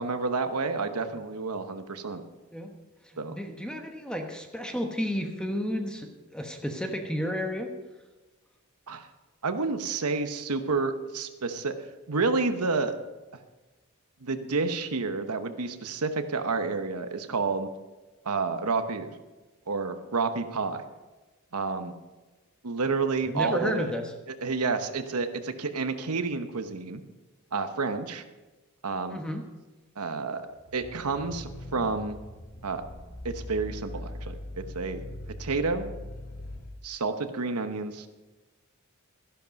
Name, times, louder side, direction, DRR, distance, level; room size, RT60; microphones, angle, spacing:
voice 1, 0.0-2.2 3.2-3.4 8.9-9.1 9.4-11.7 12.1-13.0 14.2-17.7 18.2-19.1 19.7-20.8 21.5-21.9 22.6-23.9 24.3-27.0 27.5-28.2 28.8-29.2 30.0-30.5 30.7-32.2 32.6-32.8 33.2-35.0 35.4-35.9 36.8-38.1, right 4 dB, 90° right, 8 dB, 1.0 m, -29 dB
voice 2, 3.0-7.7 23.3-24.1 29.1-29.4, equal, 5° left, 3 dB, 1.1 m, -32 dB
sound 1, 30.6-36.7, left 1 dB, 65° left, 2.4 m, -41 dB
13.5 x 11.5 x 5.3 m, 1.2 s
head